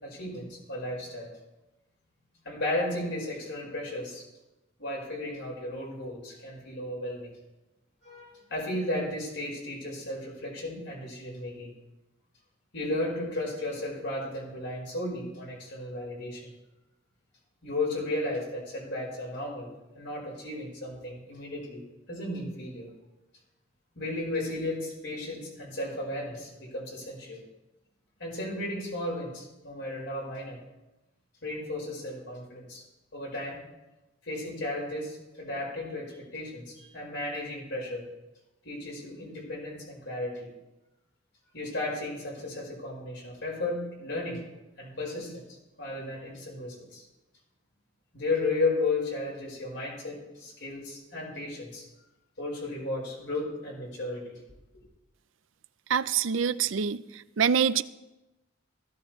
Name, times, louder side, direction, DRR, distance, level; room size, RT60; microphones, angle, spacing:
voice 1, 0.0-1.3 2.4-4.3 4.8-7.3 8.0-11.7 12.7-16.5 17.6-19.7 19.9-21.8 22.1-22.9 23.9-27.4 28.2-30.6 31.4-32.8 33.1-33.6 34.3-38.0 38.6-40.5 41.5-44.4 44.8-45.4 45.8-47.0 48.1-51.9 52.4-54.4, left 2 dB, 70° left, -2 dB, 4.9 m, -34 dB
voice 2, 55.9-57.0 57.4-57.8, right 7 dB, 85° right, 15 dB, 0.5 m, -25 dB
16.0 x 15.5 x 3.2 m, 1.0 s
head